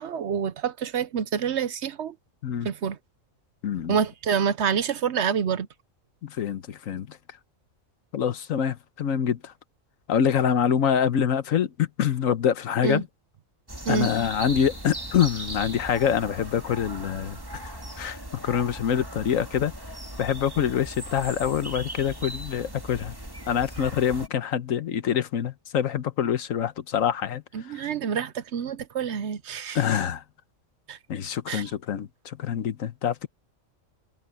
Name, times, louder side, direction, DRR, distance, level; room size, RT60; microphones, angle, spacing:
voice 1, 0.0-2.1 2.6-3.0 3.9-5.7 12.8-13.0 13.9-14.1 27.5-29.8 30.9-31.0 31.5-31.7, right 7 dB, 60° right, 0.9 m, -27 dB
voice 2, 3.6-4.0 6.2-7.2 8.1-9.5 10.1-13.1 13.9-17.7 18.0-19.7 20.2-23.1 23.5-27.4 27.7-27.8 29.7-30.2 31.1-33.3, left 8 dB, 75° left, 1.3 m, -25 dB
sound 1, 13.7-24.3, right 1 dB, 15° right, 2.4 m, -38 dB
omnidirectional pair, 1.4 m